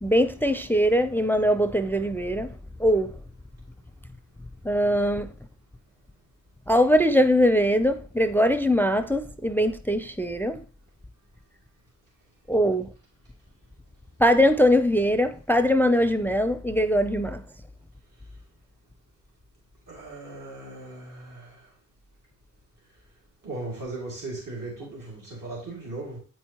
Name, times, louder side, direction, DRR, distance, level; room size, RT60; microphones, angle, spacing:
voice 1, 0.0-3.1 4.6-5.3 6.7-10.6 12.5-12.9 14.2-17.4, equal, 5° left, 0.4 m, -22 dB
voice 2, 19.9-21.7 23.4-26.2, right 2 dB, 75° right, 2.3 m, -37 dB
8.3 x 4.6 x 2.9 m
cardioid pair, 55°, 32 cm